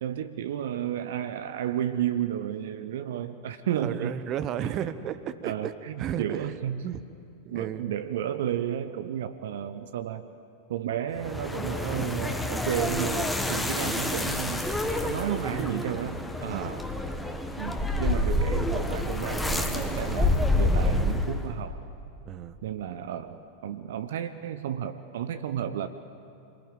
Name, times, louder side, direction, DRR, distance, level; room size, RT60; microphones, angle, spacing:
voice 1, 0.0-4.2 4.6-4.7 5.4-6.8 7.5-10.3 10.7-14.7 15.1-16.9 17.6-21.8 22.6-25.9, right 10 dB, 60° right, 10 dB, 0.8 m, -32 dB
voice 2, 3.8-6.5 6.8-7.0 7.4-7.9 15.0-15.9 16.5-16.7 22.3-22.6, right 10 dB, 35° right, 13 dB, 1.0 m, -34 dB
sound 1, 11.1-21.5, left 1 dB, 5° left, 1.7 m, -28 dB
27.0 x 21.0 x 9.1 m, 2.6 s
figure-of-eight pair, 90°, 0 cm